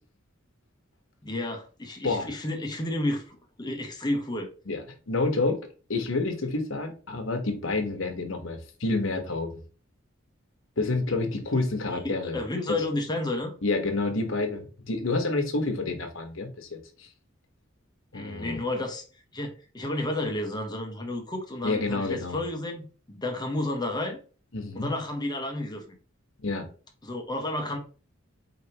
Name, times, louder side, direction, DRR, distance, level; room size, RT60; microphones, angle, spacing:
voice 1, 1.2-4.5 12.3-13.5 18.1-19.0 19.3-24.2 24.7-26.0 27.0-27.8, left 1 dB, 20° left, 1.0 m, -31 dB
voice 2, 4.7-5.6 5.9-9.6 10.8-12.4 13.6-17.1 18.1-18.6 21.6-22.4 24.5-24.9 26.4-26.7, left 3 dB, 75° left, 1.1 m, -29 dB
4.7 x 3.3 x 2.9 m
head